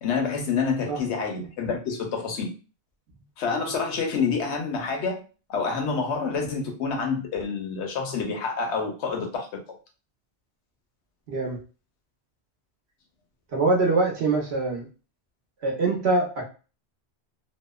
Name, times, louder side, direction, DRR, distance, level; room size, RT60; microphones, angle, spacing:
voice 1, 0.0-2.5 3.4-5.2 5.5-9.5, left 5 dB, 90° left, 0.9 m, -27 dB
voice 2, 11.3-11.6 13.5-14.9 15.6-16.5, right 3 dB, 70° right, 1.0 m, -23 dB
2.7 x 2.0 x 2.2 m
omnidirectional pair, 1.1 m